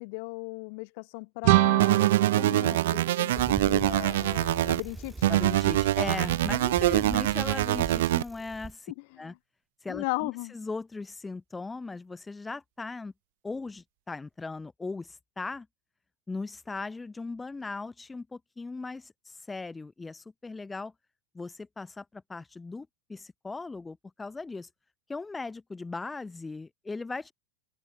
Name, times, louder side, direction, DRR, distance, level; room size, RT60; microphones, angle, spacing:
voice 1, 0.0-5.2 9.1-9.3 9.9-10.5, left 31 dB, 55° left, 1.7 m, -37 dB
sound 1, 1.4-4.2, right 24 dB, 55° right, 1.8 m, -26 dB
sound 2, 1.8-4.8 5.2-8.2, right 14 dB, 80° right, 0.4 m, -25 dB
Bicycle, 3.3-8.7, right 3 dB, 10° right, 3.9 m, -40 dB
voice 2, 5.3-9.3 9.8-13.1 13.4-15.7 16.3-20.9 21.3-24.7 25.1-27.3, left 3 dB, 10° left, 2.6 m, -38 dB
open air
supercardioid pair, 155°, 0 cm